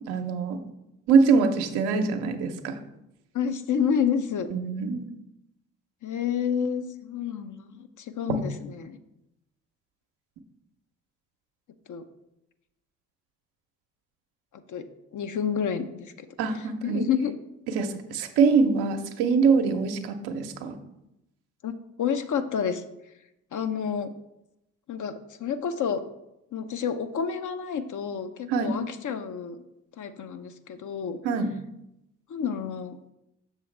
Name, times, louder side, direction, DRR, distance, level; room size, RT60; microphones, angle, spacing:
voice 1, 0.1-0.6 1.1-2.8 4.5-5.1 8.3-8.4 16.4-17.1 17.7-20.8 28.5-28.8 31.2-31.5, right 5 dB, 75° right, 6 dB, 0.9 m, -24 dB
voice 2, 3.3-4.5 6.0-9.0 11.9-12.0 14.7-14.8 15.1-16.3 16.8-17.3 21.6-21.7 22.0-22.8 23.5-24.1 24.9-25.1 25.4-26.0 26.5-29.6 30.0-31.2 32.3-33.0, left 7 dB, 50° left, 9 dB, 0.8 m, -29 dB
6.9 x 6.5 x 3.3 m, 0.87 s
hypercardioid pair, 50°, 39 cm